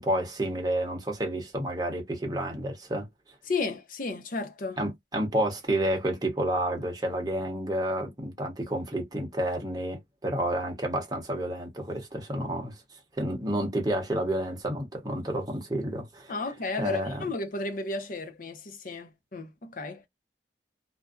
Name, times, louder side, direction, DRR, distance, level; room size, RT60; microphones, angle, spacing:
voice 1, 0.0-3.1 4.8-16.3 16.8-17.2, right 1 dB, 20° right, 0.9 m, -30 dB
voice 2, 3.5-4.8 16.3-20.1, left 3 dB, 50° left, 0.6 m, -33 dB
2.5 x 2.2 x 2.4 m
head